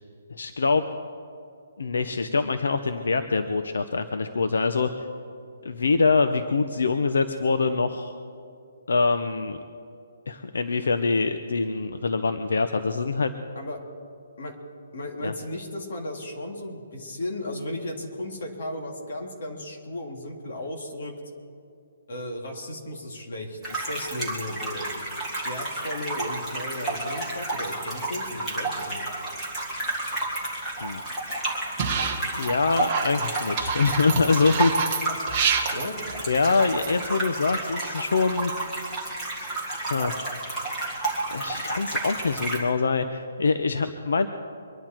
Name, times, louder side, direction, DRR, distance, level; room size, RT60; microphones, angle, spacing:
voice 1, 0.3-0.8 1.8-4.9 5.6-8.1 8.9-9.6 10.3-13.3 15.2-15.3 30.8-31.0 32.3-35.0 36.3-38.5 39.9-40.2 41.3-44.3, left 4 dB, 80° left, 8 dB, 0.9 m, -24 dB
voice 2, 14.9-21.1 22.1-24.9 25.4-29.0 35.7-36.0, left 1 dB, 45° left, 1 dB, 2.9 m, -35 dB
sound 1, 23.6-42.6, right 2 dB, ahead, 2.1 m, -31 dB
sound 2, 31.8-32.5 32.8-37.1, right 6 dB, 15° right, 1.0 m, -28 dB
24.5 x 11.0 x 4.5 m, 2.5 s
hypercardioid pair, 180°, 0 cm